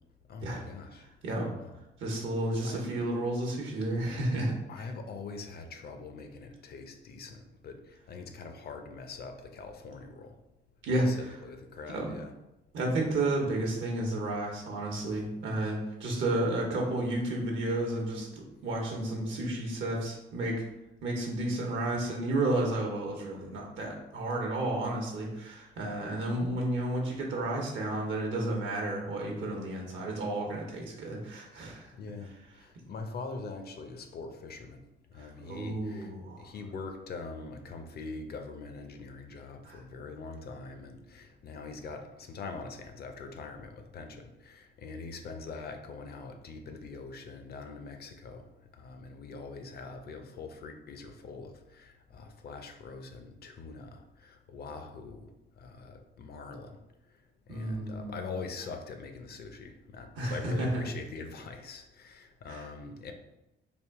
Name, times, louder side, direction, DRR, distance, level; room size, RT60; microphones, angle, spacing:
voice 1, 0.3-1.0 1.4-1.8 2.6-2.8 4.7-10.3 11.0-12.4 31.9-32.3 32.6-34.8 35.1-36.1 36.4-48.5 48.7-56.8 57.5-63.1, left 4 dB, 50° left, 6 dB, 0.6 m, -43 dB
voice 2, 2.0-4.8 10.8-11.3 11.9-12.1 12.7-18.3 18.6-20.6 21.0-31.9 35.2-36.5 39.6-39.8 57.5-58.2 60.2-60.9 62.5-62.6, right 1 dB, 75° right, 0 dB, 0.9 m, -32 dB
3.5 x 2.5 x 3.5 m, 0.93 s
cardioid pair, 90°, 20 cm